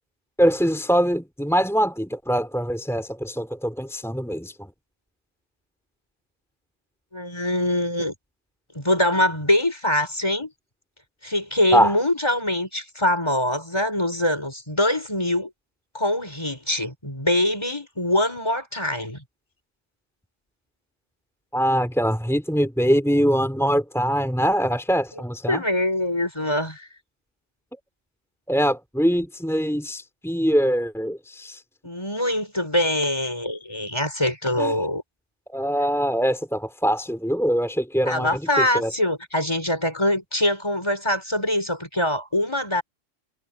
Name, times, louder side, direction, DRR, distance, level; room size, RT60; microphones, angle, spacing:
voice 1, 0.4-4.7 11.7-11.9 21.5-25.6 28.5-31.6 34.6-34.8 35.5-38.9, equal, ahead, 3.4 m, -23 dB
voice 2, 7.1-8.1 8.7-10.5 11.2-15.5 15.9-19.2 25.5-26.9 31.8-35.0 38.1-42.8, left 1 dB, 20° left, 5.6 m, -23 dB
omnidirectional pair, 1.3 m